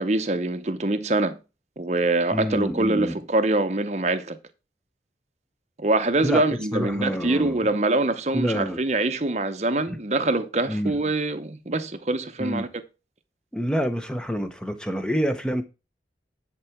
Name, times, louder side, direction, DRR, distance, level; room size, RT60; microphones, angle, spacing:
voice 1, 0.0-1.4 1.8-4.4 5.8-12.7, right 2 dB, 40° right, 0.8 m, -24 dB
voice 2, 2.3-3.1 6.2-6.4 6.7-7.7 8.3-8.8 9.9-10.0 10.7-10.9 12.4-12.7 13.5-15.6, equal, 5° left, 0.8 m, -27 dB
10.0 x 4.6 x 5.8 m
head